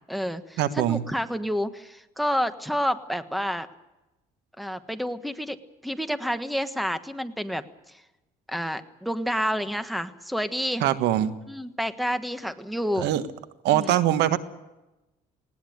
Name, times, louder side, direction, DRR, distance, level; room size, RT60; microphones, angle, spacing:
voice 1, 0.0-3.7 4.6-5.6 5.8-7.6 8.5-10.8 11.5-13.1 13.7-14.0, equal, ahead, 11 dB, 1.4 m, -29 dB
voice 2, 0.6-1.0 10.8-11.3 13.0-13.2 13.6-14.4, right 12 dB, 85° right, 12 dB, 1.4 m, -22 dB
19.5 x 18.5 x 9.4 m, 0.99 s
cardioid pair, 110°, 17 cm